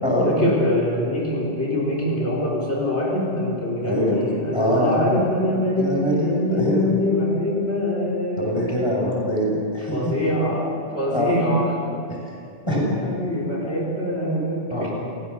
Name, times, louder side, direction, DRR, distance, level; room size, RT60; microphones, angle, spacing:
voice 1, 0.2-8.6 9.8-11.6 12.8-14.9, left 1 dB, 70° left, -4 dB, 4.3 m, -24 dB
voice 2, 3.8-4.2 4.5-4.9 5.8-7.0 8.4-10.1 11.1-11.3 12.1-12.2 12.7-12.8 14.3-14.4 14.7-14.9, equal, 20° left, -2 dB, 6.6 m, -23 dB
29.5 x 17.5 x 6.8 m, 2.6 s
omnidirectional pair, 1.2 m